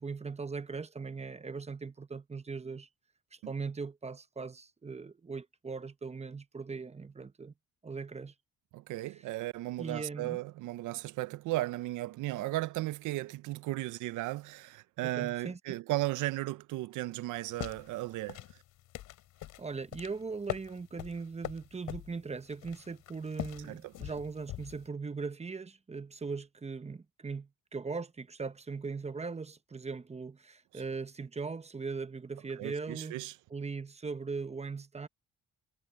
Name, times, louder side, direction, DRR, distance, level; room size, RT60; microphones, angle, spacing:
voice 1, 0.0-2.9 3.3-7.5 7.8-8.3 9.8-10.4 15.2-15.8 19.6-33.2 33.5-35.1, right 4 dB, 20° right, 0.9 m, -39 dB
voice 2, 8.7-18.6 23.6-23.9 30.7-30.8 32.6-33.4, right 17 dB, 85° right, 0.6 m, -35 dB
sound 1, 17.4-24.9, left 14 dB, 90° left, 3.5 m, -43 dB
cardioid pair, 90°, 30 cm